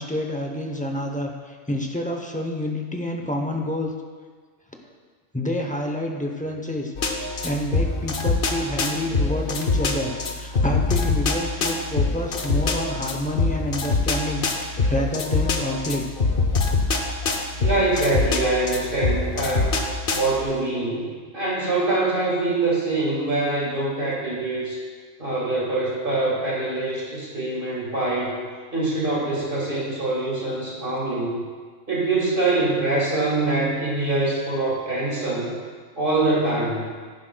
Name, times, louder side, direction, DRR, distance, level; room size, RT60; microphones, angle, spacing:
voice 1, 0.0-3.9 5.3-6.9 7.4-16.0, left 1 dB, 10° left, 1 dB, 0.5 m, -28 dB
sound 1, 7.0-20.4, left 3 dB, 50° left, 0.9 m, -24 dB
voice 2, 17.6-19.8 20.1-21.0 21.3-24.8 25.2-28.4 28.7-31.4 31.9-35.6 36.0-36.8, right 2 dB, 45° right, -5 dB, 2.0 m, -24 dB
11.0 x 10.0 x 2.2 m, 1.5 s
omnidirectional pair, 1.3 m